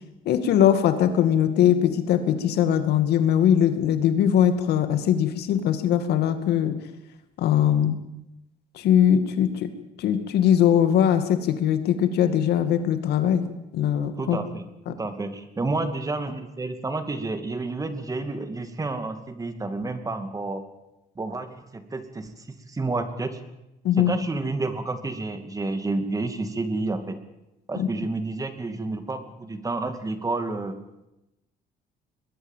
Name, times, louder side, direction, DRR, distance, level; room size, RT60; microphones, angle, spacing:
voice 1, 0.3-6.8 7.4-8.0 8.8-9.7 10.0-13.4 13.7-14.4 14.9-15.0 23.8-24.1 27.8-27.9, left 9 dB, 75° left, 9 dB, 2.3 m, -21 dB
voice 2, 14.2-20.6 21.2-23.4 24.0-27.2 27.7-30.8, right 3 dB, 20° right, 8 dB, 2.4 m, -30 dB
22.0 x 20.5 x 7.5 m, 0.93 s
cardioid pair, 110°, 17 cm